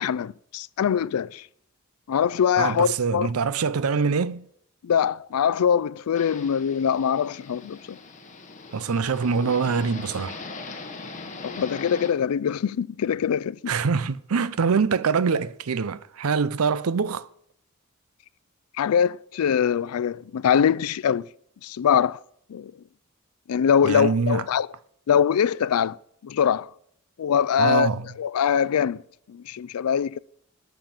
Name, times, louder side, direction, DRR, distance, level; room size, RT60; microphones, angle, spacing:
voice 1, 0.0-1.4 2.1-3.3 4.8-8.0 11.4-13.7 18.8-21.2 21.6-22.2 22.5-22.7 23.5-24.7 25.1-26.0 26.2-26.7 27.2-27.9 28.2-29.0 29.3-30.2, left 8 dB, 85° left, 0.4 m, -23 dB
voice 2, 2.6-4.5 8.7-10.4 13.7-17.3 23.8-24.5 27.6-28.2, right 5 dB, 80° right, 0.5 m, -24 dB
sound 1, 6.1-12.1, left 3 dB, 35° left, 1.3 m, -40 dB
12.0 x 5.7 x 7.4 m
head